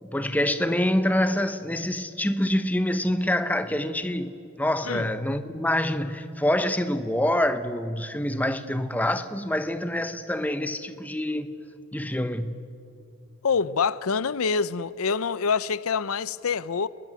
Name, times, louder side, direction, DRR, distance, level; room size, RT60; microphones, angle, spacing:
voice 1, 0.0-11.5 11.9-12.7, left 1 dB, 5° left, 0.8 m, -26 dB
voice 2, 13.4-16.9, left 5 dB, 80° left, 0.6 m, -26 dB
29.0 x 21.0 x 9.4 m
head